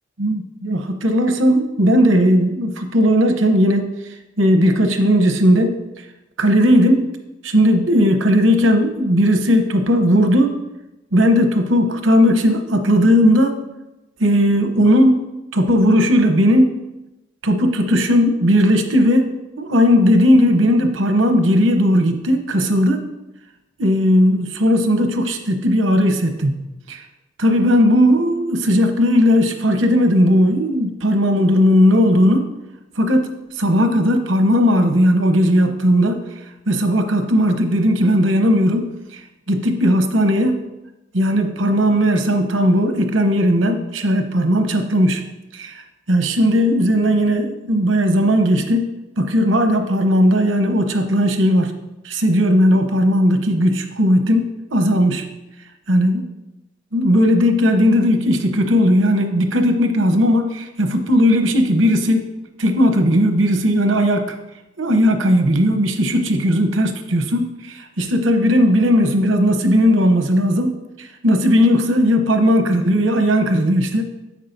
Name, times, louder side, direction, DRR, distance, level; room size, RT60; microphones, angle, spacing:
voice 1, 0.2-4.0 4.4-5.8 6.4-7.1 7.4-10.6 11.1-13.6 14.2-15.3 15.5-16.8 17.4-19.3 19.6-23.0 23.8-26.6 26.9-27.0 27.4-32.5 33.0-36.2 36.7-39.2 39.5-40.7 41.1-45.2 45.5-51.7 52.0-55.2 55.9-56.2 56.9-62.3 62.6-64.3 64.8-70.7 71.0-74.1, equal, 85° right, 5 dB, 0.9 m, -16 dB
10.0 x 7.3 x 2.7 m, 0.97 s
head